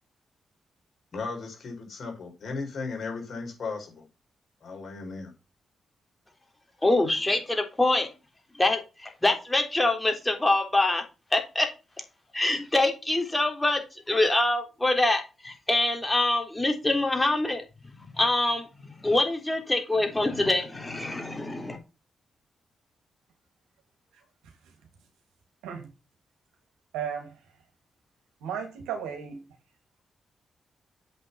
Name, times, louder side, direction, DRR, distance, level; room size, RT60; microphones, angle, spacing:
voice 1, 1.1-4.0 4.6-5.3, left 4 dB, 60° left, 4.9 m, -36 dB
voice 2, 6.8-8.1 8.6-11.0 11.3-11.7 12.3-13.8 14.1-17.6 18.1-18.6 19.0-21.8, left 2 dB, 20° left, 3.6 m, -25 dB
voice 3, 26.9-27.3 28.4-29.4, right 7 dB, 85° right, 2.6 m, -34 dB
8.2 x 5.6 x 5.6 m
hypercardioid pair, 40°, 0 cm